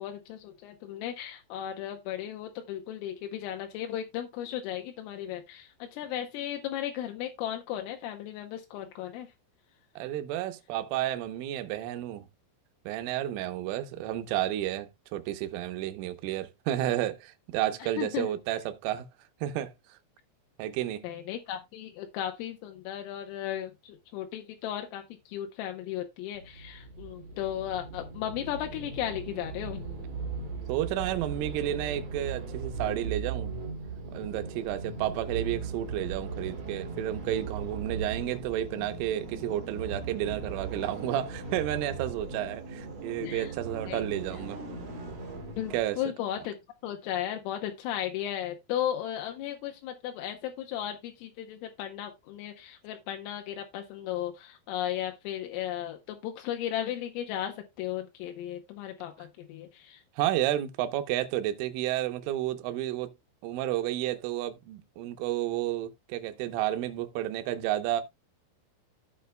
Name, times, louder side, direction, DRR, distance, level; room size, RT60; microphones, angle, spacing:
voice 1, 0.0-9.3 17.8-18.3 21.0-29.8 43.2-43.5 43.9-44.1 45.6-46.6 46.8-60.0, left 11 dB, 80° left, 3.5 m, -35 dB
voice 2, 10.0-12.3 12.9-19.1 19.4-20.0 20.6-21.0 30.7-33.6 34.1-44.6 45.7-46.0 60.2-63.1 63.4-68.0, right 13 dB, 80° right, 3.3 m, -31 dB
sound 1, 26.3-45.8, right 4 dB, 45° right, 3.2 m, -38 dB
15.5 x 5.4 x 2.2 m
omnidirectional pair, 5.9 m